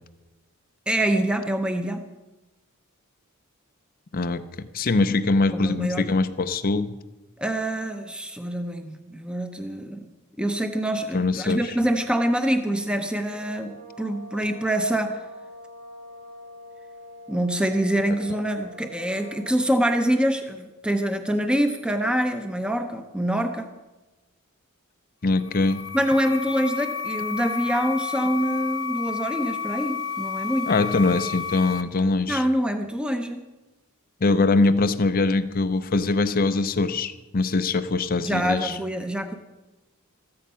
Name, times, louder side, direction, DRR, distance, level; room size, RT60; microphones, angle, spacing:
voice 1, 0.9-2.1 5.5-6.0 7.4-10.0 10.4-15.2 17.3-23.7 25.9-30.7 32.3-33.4 38.2-39.3, right 1 dB, 5° right, 6 dB, 0.7 m, -25 dB
voice 2, 4.1-6.9 11.1-11.8 25.2-25.9 30.7-32.4 34.2-38.8, left 3 dB, 40° left, 10 dB, 0.5 m, -23 dB
sound 1, 13.2-19.8, left 1 dB, 65° right, 7.0 m, -44 dB
sound 2, 25.3-31.8, left 7 dB, 65° left, 0.9 m, -31 dB
14.5 x 13.5 x 5.6 m, 1.1 s
head